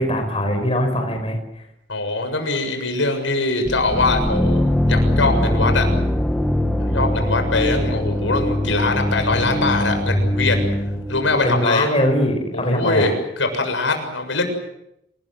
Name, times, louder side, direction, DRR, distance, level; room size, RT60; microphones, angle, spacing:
voice 1, 0.0-1.6 11.4-13.1, left 1 dB, 30° left, 4 dB, 5.5 m, -21 dB
voice 2, 1.9-5.9 6.8-10.7 11.1-11.9 12.5-14.4, left 2 dB, 80° left, 6 dB, 7.0 m, -22 dB
sound 1, 3.7-11.5, left 1 dB, 5° left, 1.8 m, -21 dB
28.0 x 21.0 x 7.9 m, 0.81 s
head